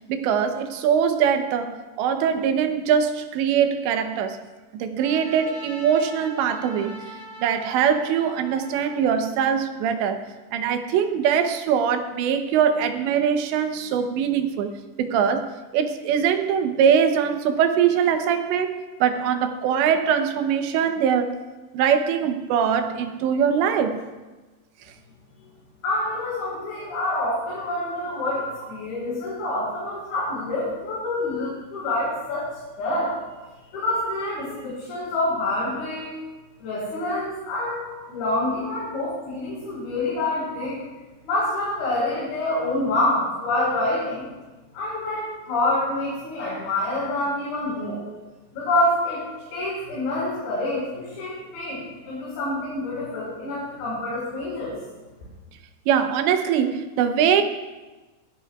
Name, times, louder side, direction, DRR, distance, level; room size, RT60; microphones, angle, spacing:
voice 1, 0.1-4.4 4.7-10.2 10.5-14.7 15.0-21.4 21.7-24.0 37.9-38.0 38.7-38.8 55.9-57.4, right 8 dB, 80° right, 6 dB, 3.1 m, -22 dB
Trumpet, 5.0-9.4, equal, 35° left, 2.1 m, -42 dB
voice 2, 25.8-32.5 32.8-33.2 33.7-36.1 36.6-37.8 38.1-40.8 41.2-44.3 44.7-48.0 48.5-49.2 49.5-54.7, left 1 dB, 70° left, -8 dB, 6.8 m, -27 dB
21.5 x 16.5 x 2.4 m, 1.2 s
omnidirectional pair, 5.2 m